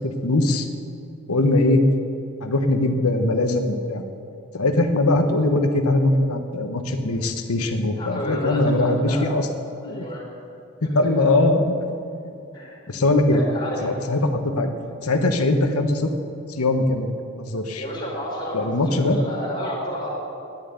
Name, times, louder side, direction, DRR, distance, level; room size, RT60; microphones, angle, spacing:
voice 1, 0.0-0.7 1.3-1.8 2.4-4.0 4.5-9.5 9.8-10.1 10.8-11.8 12.9-13.4 13.8-14.7 15.0-16.1 16.6-17.1 17.4-17.8 18.5-19.2, left 2 dB, 90° left, 6 dB, 1.1 m, -21 dB
voice 2, 7.9-9.3 9.8-10.3 11.0-11.3 12.5-12.8 13.3-13.9 17.7-20.1, equal, 20° left, -3 dB, 3.6 m, -31 dB
10.5 x 10.0 x 9.0 m, 2.6 s
head